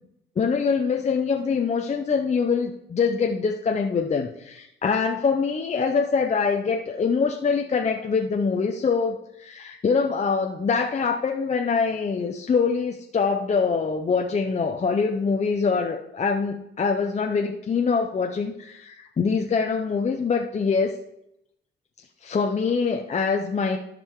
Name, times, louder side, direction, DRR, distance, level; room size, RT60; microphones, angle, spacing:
voice 1, 0.4-21.0 22.2-23.8, left 5 dB, 35° left, 2 dB, 0.8 m, -24 dB
13.0 x 5.1 x 3.7 m, 0.79 s
cardioid pair, 90°, 20 cm